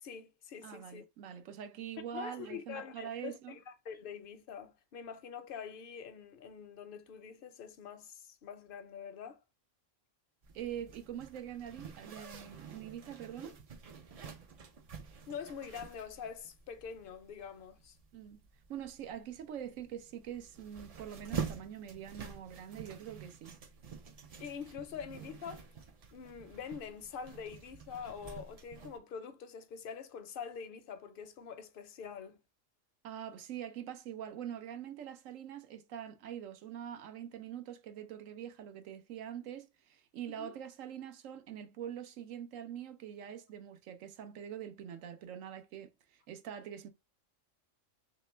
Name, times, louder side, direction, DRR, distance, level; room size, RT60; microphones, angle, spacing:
voice 1, 0.0-1.0 2.1-9.4 15.3-18.0 24.4-25.7 26.1-32.4 40.3-40.5, left 7 dB, 60° left, 0.6 m, -45 dB
voice 2, 0.6-3.6 10.5-13.6 18.1-18.4 18.7-23.6 33.0-46.9, right 9 dB, 90° right, 1.0 m, -44 dB
Zipper (clothing), 10.4-29.0, right 6 dB, 60° right, 0.3 m, -48 dB
3.2 x 2.9 x 3.1 m
omnidirectional pair, 1.3 m